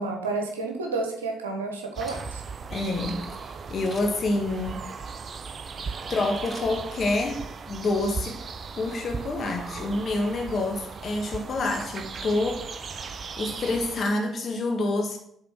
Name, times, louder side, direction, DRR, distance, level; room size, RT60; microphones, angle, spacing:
voice 1, 0.0-2.4, right 3 dB, 85° right, 0.9 m, -30 dB
sound 1, 1.9-14.0, right 5 dB, 45° right, 0.5 m, -37 dB
Camera, 2.1-2.6 3.8-4.3 6.4-7.3 7.7-7.8, left 1 dB, 5° left, 3.2 m, -47 dB
voice 2, 2.7-4.9 6.1-8.4 8.8-12.8 13.4-15.2, left 2 dB, 45° left, 1.5 m, -27 dB
7.8 x 3.8 x 5.9 m
figure-of-eight pair, 45°, 0 cm